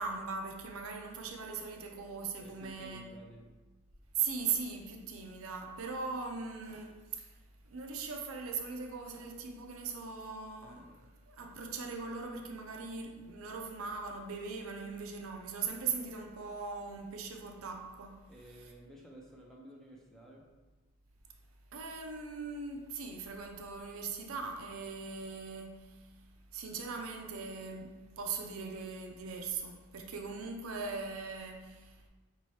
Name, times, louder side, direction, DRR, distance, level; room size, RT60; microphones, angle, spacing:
voice 1, 0.0-3.0 4.1-7.4 7.7-18.2 21.7-26.1 26.5-32.1, right 5 dB, 70° right, 0.5 m, -40 dB
voice 2, 2.4-3.5 18.3-20.5, right 1 dB, ahead, 0.5 m, -53 dB
5.2 x 2.8 x 3.2 m
head